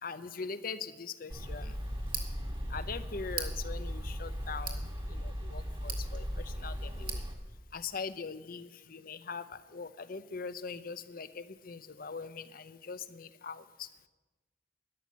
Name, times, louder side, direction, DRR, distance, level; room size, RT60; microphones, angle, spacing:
voice 1, 0.0-1.8 2.7-7.2 7.7-13.9, left 5 dB, 55° left, 13 dB, 0.7 m, -42 dB
Tick, 1.3-7.3, right 1 dB, 30° right, 1.9 m, -37 dB
12.5 x 11.0 x 7.4 m, 1.2 s
head